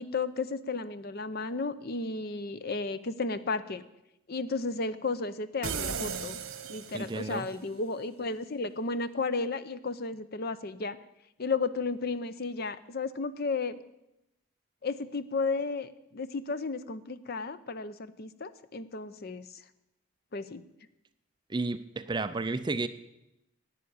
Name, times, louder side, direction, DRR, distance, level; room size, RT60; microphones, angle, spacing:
voice 1, 0.0-3.8 4.3-6.4 6.7-11.0 11.4-13.8 14.8-19.5 20.3-20.6, left 3 dB, 45° left, 14 dB, 0.6 m, -33 dB
sound 1, 5.6-7.4, right 6 dB, 70° right, 1.4 m, -36 dB
voice 2, 6.9-7.5 21.5-22.9, right 3 dB, 20° right, 12 dB, 0.4 m, -32 dB
11.5 x 9.2 x 8.6 m, 0.89 s
head